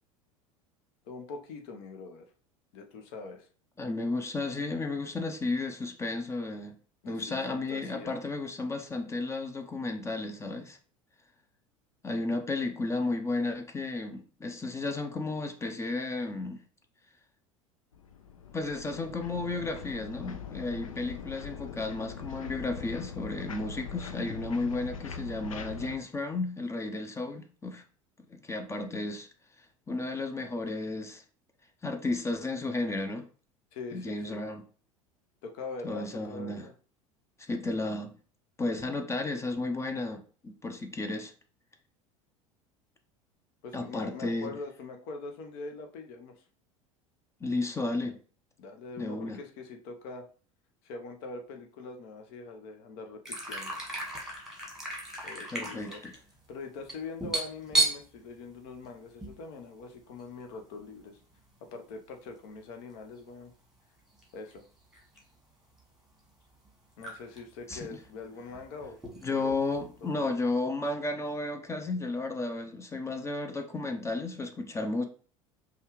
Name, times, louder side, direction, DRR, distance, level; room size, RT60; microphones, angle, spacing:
voice 1, 1.1-2.3 2.7-3.5 7.0-8.2 33.7-34.4 35.4-36.7 43.6-46.4 48.6-50.3 50.8-53.8 55.2-56.0 56.5-61.2 61.6-63.5 64.3-64.6 67.0-69.5 70.0-70.3, left 3 dB, 55° left, 0.8 m, -43 dB
voice 2, 3.8-6.7 7.0-10.8 12.0-16.6 18.5-27.8 28.3-29.3 29.9-31.2 31.8-33.2 33.9-34.6 35.8-36.7 37.4-38.1 38.6-41.3 43.7-44.5 47.4-48.2 49.0-49.4 55.5-56.1 67.7-68.0 69.2-75.0, left 2 dB, 15° left, 0.6 m, -33 dB
sound 1, 17.9-26.0, left 6 dB, 80° left, 0.5 m, -42 dB
sound 2, 53.3-59.4 59.7-59.8 60.2-60.5 61.5-61.6 63.0-63.2 64.2-64.3 64.5-65.3 65.8-65.9 66.7-66.8 67.0-67.4 67.7-69.9, right 2 dB, 5° right, 1.6 m, -34 dB
5.4 x 2.4 x 3.0 m
figure-of-eight pair, 75°, 17 cm